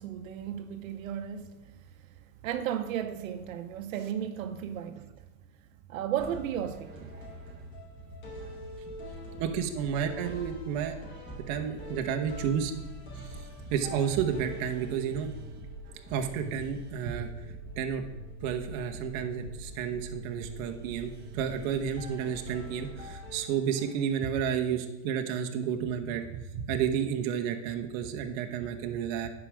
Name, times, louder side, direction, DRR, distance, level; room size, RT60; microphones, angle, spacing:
voice 1, 0.0-2.2 2.4-5.1 5.9-7.1, right 9 dB, 85° right, 0.8 m, -35 dB
sound 1, 6.2-24.0, equal, 30° left, 2.5 m, -45 dB
sound 2, 6.7-7.7 8.4-23.1 23.8-24.1, right 3 dB, 25° right, 1.3 m, -48 dB
voice 2, 9.4-11.0 11.4-12.7 13.2-15.4 16.1-17.3 17.8-18.0 18.4-29.3, right 8 dB, 45° right, 1.0 m, -31 dB
9.5 x 4.9 x 6.3 m
supercardioid pair, 155°, 40 cm